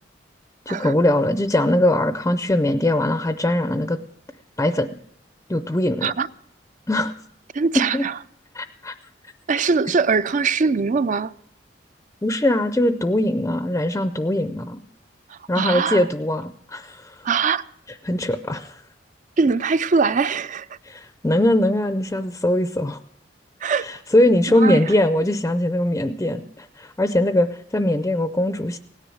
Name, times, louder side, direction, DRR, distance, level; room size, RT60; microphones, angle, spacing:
voice 1, 0.7-4.0 4.6-4.9 5.5-6.1 6.9-7.1 7.9-8.0 8.5-8.9 12.2-14.8 15.5-17.2 18.0-18.8 20.8-23.0 23.8-28.8, left 1 dB, 15° left, 0.5 m, -21 dB
voice 2, 7.5-8.1 9.5-11.3 15.3-16.0 17.2-17.6 19.4-20.8 23.6-23.9 24.5-24.8, right 5 dB, 45° right, 0.5 m, -22 dB
17.0 x 10.0 x 6.3 m
head